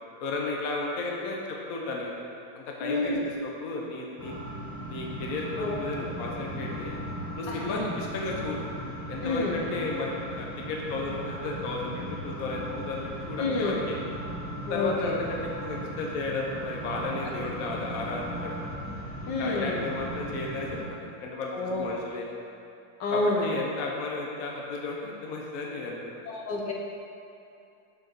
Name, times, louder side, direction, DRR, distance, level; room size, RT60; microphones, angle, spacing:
voice 1, 0.2-2.1 2.5-4.3 4.9-7.0 7.4-8.7 9.1-14.0 14.7-18.6 19.2-22.3 23.1-26.1, left 3 dB, 55° left, -1 dB, 1.2 m, -34 dB
voice 2, 2.8-3.2 5.6-5.8 7.5-7.8 9.2-9.6 13.4-13.8 14.7-15.2 19.3-19.8 21.5-21.9 23.0-23.6 26.3-26.7, left 2 dB, 70° left, -2 dB, 1.6 m, -29 dB
sound 1, 4.2-20.8, equal, 10° right, 1.3 m, -37 dB
7.7 x 4.9 x 6.1 m, 2.6 s
omnidirectional pair, 2.1 m